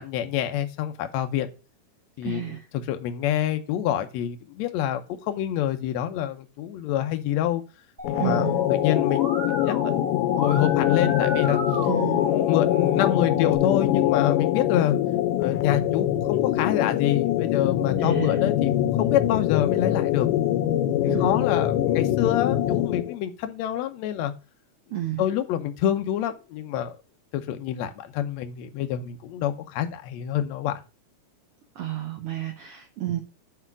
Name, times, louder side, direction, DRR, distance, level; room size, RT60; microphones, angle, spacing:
voice 1, 0.0-1.5 2.2-7.6 8.1-9.3 9.6-9.9 10.4-11.6 12.2-15.0 15.4-18.7 19.0-20.3 21.2-24.3 25.2-27.0 27.3-30.8, left 11 dB, 70° left, 7 dB, 1.8 m, -27 dB
voice 2, 2.2-2.7 8.2-8.7 11.9-12.3 18.0-18.4 21.1-21.5 24.9-25.2 31.7-33.2, right 13 dB, 90° right, 4 dB, 1.2 m, -31 dB
sound 1, 8.0-23.2, left 13 dB, 90° left, 2.2 m, -23 dB
Musical instrument, 8.0-13.6, right 1 dB, 20° right, 1.3 m, -35 dB
8.2 x 3.7 x 6.0 m, 0.32 s
omnidirectional pair, 3.7 m